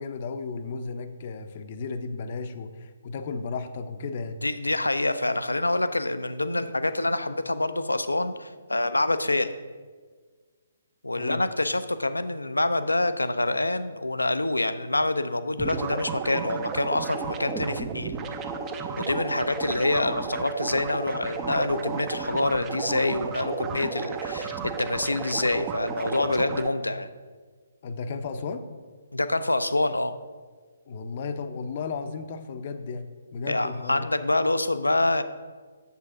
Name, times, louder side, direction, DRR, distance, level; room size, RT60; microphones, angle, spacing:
voice 1, 0.0-4.4 11.1-11.4 27.8-28.7 30.9-34.1, left 4 dB, 40° left, 8 dB, 0.6 m, -34 dB
voice 2, 4.4-9.5 11.0-18.2 19.0-27.1 29.1-30.2 33.5-35.2, left 2 dB, 80° left, 11 dB, 0.5 m, -26 dB
sound 1, 15.6-26.7, right 5 dB, 20° right, 0.5 m, -33 dB
8.2 x 7.3 x 3.8 m, 1.5 s
figure-of-eight pair, 135°, 0 cm